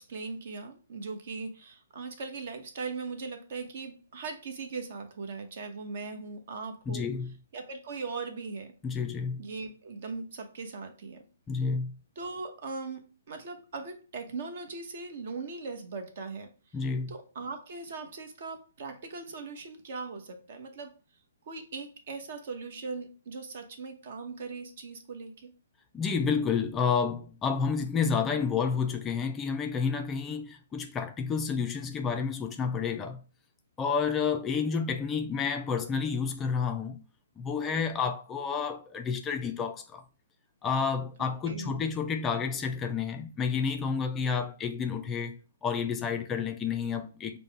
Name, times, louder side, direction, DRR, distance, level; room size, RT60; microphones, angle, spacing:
voice 1, 0.0-7.1 7.5-8.7 9.4-11.2 12.2-13.0 13.3-16.5 17.1-21.0 21.4-25.5 41.2-41.8, right 4 dB, 55° right, 0.9 m, -39 dB
voice 2, 6.9-7.3 8.8-9.4 11.5-12.0 16.7-17.1 25.9-33.2 33.8-37.0 37.4-40.0 40.6-45.3 45.6-47.4, left 6 dB, 15° left, 0.3 m, -30 dB
5.3 x 2.1 x 3.3 m
hypercardioid pair, 155°, 0 cm